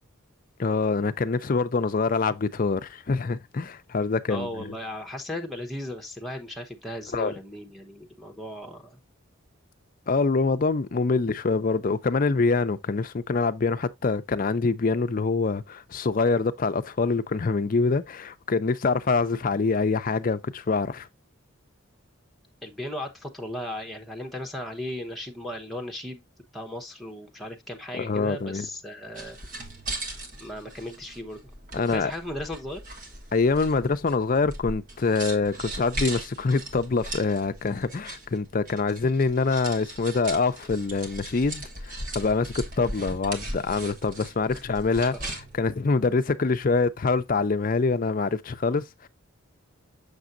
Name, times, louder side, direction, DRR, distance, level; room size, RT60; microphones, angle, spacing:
voice 1, 0.6-4.7 7.1-7.3 10.1-21.1 28.0-28.7 31.7-32.1 33.3-45.1 45.6-49.1, left 4 dB, 40° left, 0.5 m, -25 dB
voice 2, 4.3-9.0 22.6-26.2 26.5-29.4 30.4-31.4 31.9-32.8 45.1-45.3, left 1 dB, ahead, 0.9 m, -36 dB
sound 1, 29.1-45.6, right 1 dB, 40° right, 1.4 m, -38 dB
6.7 x 6.1 x 2.5 m
head